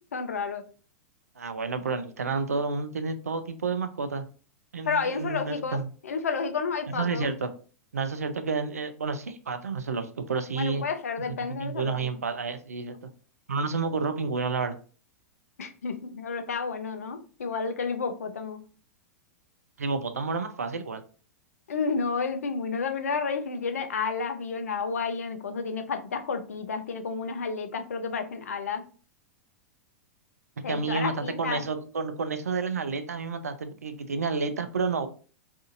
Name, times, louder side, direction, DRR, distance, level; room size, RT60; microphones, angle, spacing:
voice 1, 0.1-0.6 4.8-5.8 6.0-7.3 10.6-12.1 15.6-18.6 21.7-28.8 30.6-31.6, left 5 dB, 75° left, 8 dB, 0.5 m, -31 dB
voice 2, 1.4-4.3 4.7-5.9 6.9-7.5 7.9-10.8 11.5-13.1 13.5-14.8 19.8-21.0 30.7-35.1, right 4 dB, 85° right, 9 dB, 0.4 m, -30 dB
2.6 x 2.4 x 2.5 m, 0.38 s
figure-of-eight pair, 100°, 8 cm